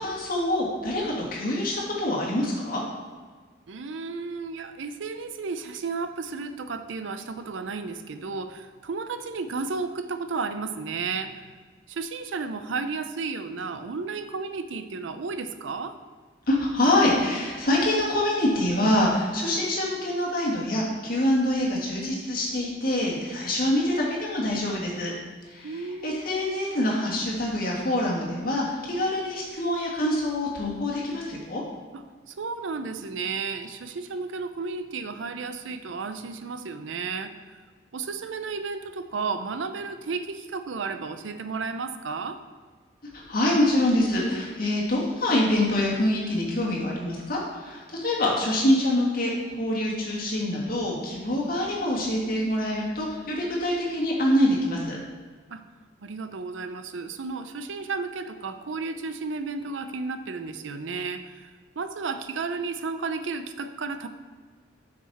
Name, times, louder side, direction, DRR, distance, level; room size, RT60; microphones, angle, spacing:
voice 1, 0.0-2.8 16.5-25.1 25.5-31.6 43.1-55.0, left 1 dB, 50° left, -3 dB, 1.8 m, -25 dB
voice 2, 3.7-11.5 11.9-16.0 25.6-26.2 31.9-37.6 37.9-42.4 55.5-55.6 56.0-61.5 61.8-64.1, right 4 dB, 90° right, 10 dB, 0.5 m, -33 dB
7.4 x 6.1 x 4.1 m, 1.5 s
head